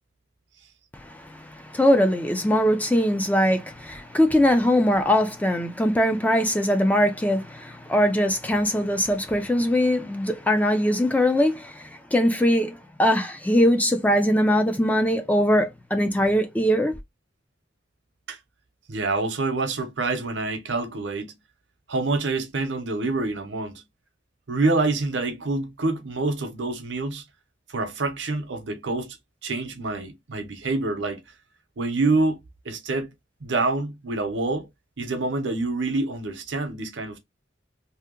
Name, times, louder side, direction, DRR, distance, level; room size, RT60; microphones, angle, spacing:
voice 1, 1.1-16.9, equal, 10° left, 0.4 m, -21 dB
voice 2, 18.9-21.3 21.9-23.8 24.5-27.2 27.7-29.2 29.4-31.2 31.8-32.4 32.6-33.1 33.4-34.7 35.0-37.2, right 3 dB, 80° right, 0.7 m, -26 dB
2.8 x 2.1 x 3.6 m
head